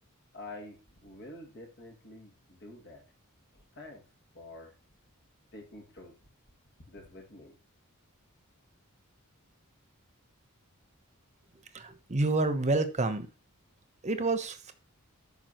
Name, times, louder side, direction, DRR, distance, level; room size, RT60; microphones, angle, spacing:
voice 1, 0.3-3.0 3.5-4.0 4.3-4.7 5.5-6.2 6.9-7.6, left 1 dB, 50° left, 2 dB, 2.3 m, -48 dB
voice 2, 11.7-13.3 14.0-14.7, right 2 dB, 30° right, 9 dB, 1.0 m, -28 dB
13.5 x 5.6 x 3.0 m, 0.29 s
head